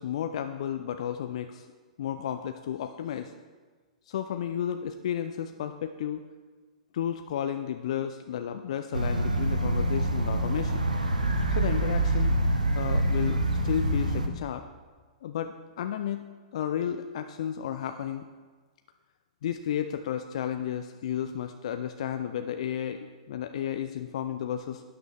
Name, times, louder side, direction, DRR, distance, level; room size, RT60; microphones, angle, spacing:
voice 1, 0.0-1.7 2.0-3.3 4.1-6.3 6.9-10.9 11.5-12.4 12.7-14.6 15.2-16.2 16.5-18.2 19.4-24.8, left 9 dB, 55° left, 8 dB, 0.5 m, -32 dB
sound 1, 8.9-14.3, right 1 dB, 85° right, 0.9 m, -26 dB
12.5 x 8.9 x 3.4 m, 1.4 s
figure-of-eight pair, 110°, 4 cm